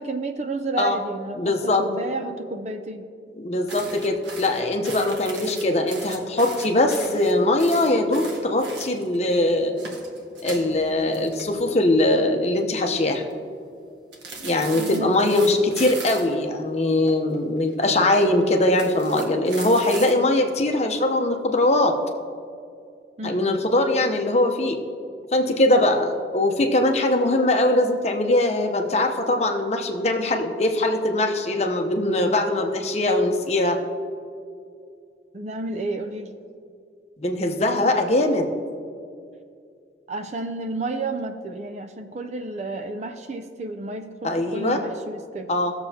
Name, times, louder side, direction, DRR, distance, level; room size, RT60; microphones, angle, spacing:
voice 1, 0.0-3.1 14.7-15.2 23.2-23.6 35.3-36.3 40.1-45.5, right 2 dB, 40° right, 7 dB, 0.5 m, -31 dB
voice 2, 1.4-1.9 3.4-9.8 10.4-13.2 14.4-22.0 23.2-24.8 25.3-33.8 37.2-38.5 44.2-44.8 45.5-45.7, left 1 dB, 35° left, 4 dB, 0.7 m, -21 dB
sound 1, 3.7-9.2 9.6-12.0 12.2-12.5 12.9-13.3 14.1-16.4 17.1-17.9 18.6-20.1, right 3 dB, 90° right, 1.3 m, -38 dB
17.0 x 6.9 x 2.8 m, 2.3 s
head